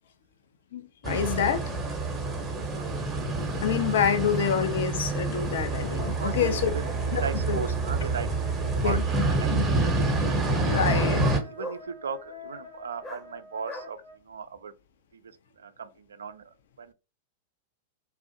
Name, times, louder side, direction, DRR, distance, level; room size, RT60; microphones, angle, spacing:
voice 1, 0.7-1.6 3.6-6.7 7.1-7.2 7.5-7.6 8.8-9.0 9.5-9.6 10.6-11.4, left 8 dB, 60° left, 0.4 m, -27 dB
sound 1, 1.0-11.4, right 3 dB, 15° right, 0.7 m, -27 dB
sound 2, 3.4-3.5 4.0-4.1 4.3-4.5 5.4-5.5 6.3-6.4 7.1-8.1 10.9-11.9 13.0-13.3 13.6-13.9, left 1 dB, 20° left, 0.6 m, -40 dB
Wind instrument woodwind instrument, 6.0-14.2, left 3 dB, 80° left, 0.8 m, -47 dB
voice 2, 6.2-6.9 7.1-8.3 8.7-9.7 11.4-14.0 14.2-14.7 15.1-16.9, right 5 dB, 75° right, 0.3 m, -37 dB
2.4 x 2.0 x 2.6 m
figure-of-eight pair, 95°, 0 cm